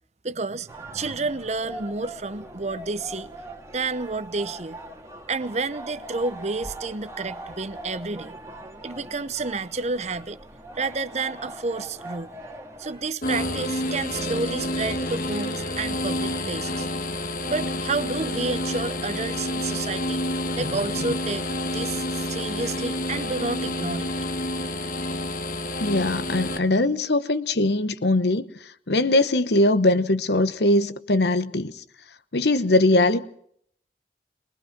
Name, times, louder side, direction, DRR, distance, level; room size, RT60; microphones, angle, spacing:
voice 1, 0.2-3.3 3.7-4.8 5.3-8.3 8.8-10.4 10.8-12.3 12.8-16.9 17.5-20.2 20.6-24.1, right 3 dB, 40° right, 0.8 m, -30 dB
sound 1, 0.7-13.1, right 1 dB, 15° right, 1.8 m, -41 dB
sound 2, 13.2-26.6, left 1 dB, 50° left, 1.4 m, -29 dB
voice 2, 25.8-28.4 28.9-31.8 32.3-33.2, left 2 dB, 70° left, 1.0 m, -21 dB
23.0 x 20.0 x 6.0 m
head